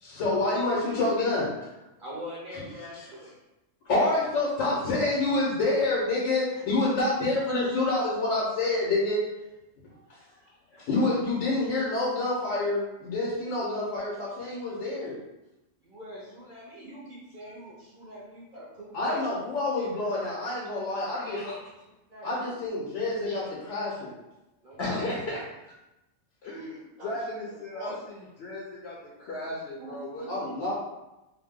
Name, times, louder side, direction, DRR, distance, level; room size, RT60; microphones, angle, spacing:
voice 1, 0.0-1.7 2.8-2.9 3.9-9.2 10.8-15.2 18.9-21.4 22.2-24.1 30.3-30.7, left 2 dB, 90° left, -6 dB, 1.2 m, -27 dB
voice 2, 2.0-3.4 10.5-11.1 15.8-19.3 19.8-19.9 21.1-21.5 22.1-22.6 24.6-24.9 26.5-26.7 27.0-27.3 27.7-28.0 29.8-30.3, equal, 50° right, -5 dB, 0.7 m, -43 dB
voice 3, 21.2-21.6 23.3-23.4 24.8-25.4 26.4-27.9 28.4-30.7, left 1 dB, 65° left, -4 dB, 0.7 m, -36 dB
2.7 x 2.1 x 3.5 m, 0.96 s
omnidirectional pair, 1.3 m